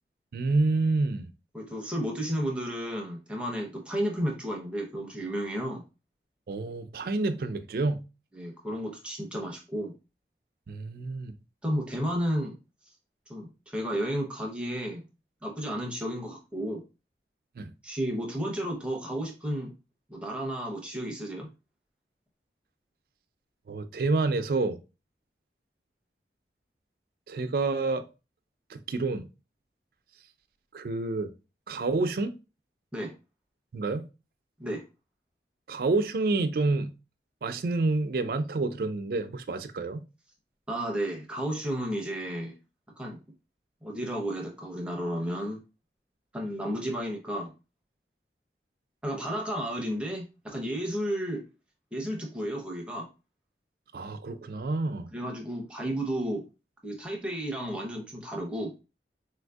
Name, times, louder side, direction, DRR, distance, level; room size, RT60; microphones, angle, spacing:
voice 1, 0.3-1.3 6.5-8.0 10.7-11.3 17.6-17.7 23.7-24.8 27.3-28.0 28.7-29.3 30.7-31.3 31.7-32.3 33.7-34.0 35.7-36.9 37.4-40.0 53.9-55.1, right 3 dB, 55° right, 0.4 m, -28 dB
voice 2, 1.5-5.8 8.3-9.9 11.6-12.6 13.3-15.0 15.4-16.8 17.8-19.7 20.1-21.5 32.9-33.1 34.6-34.8 40.7-42.5 43.0-43.2 43.8-45.6 46.3-47.5 49.0-51.4 51.9-53.1 55.1-56.4 56.8-58.7, equal, 5° right, 0.6 m, -32 dB
4.0 x 2.6 x 2.2 m
head